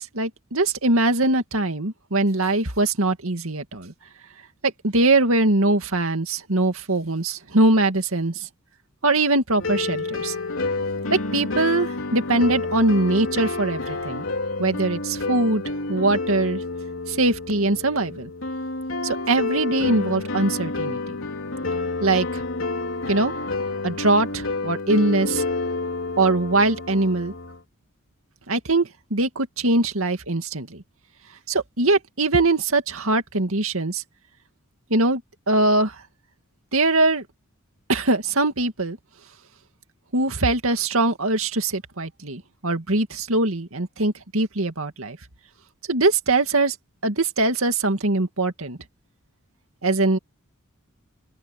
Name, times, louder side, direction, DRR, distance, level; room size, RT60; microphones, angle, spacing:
voice 1, 0.0-3.9 4.6-8.5 9.0-10.4 11.1-14.2 14.6-15.6 15.9-16.6 17.1-18.3 19.0-21.0 22.0-22.4 23.1-23.3 23.8-25.4 26.2-27.3 28.5-30.8 31.5-34.0 34.9-35.2 35.5-36.0 36.7-37.2 37.9-39.0 40.1-45.2 45.9-46.8 47.0-48.8 49.8-50.2, right 2 dB, 70° right, 2.3 m, -22 dB
sound 1, 9.6-27.6, left 3 dB, 60° left, 4.0 m, -29 dB
open air
head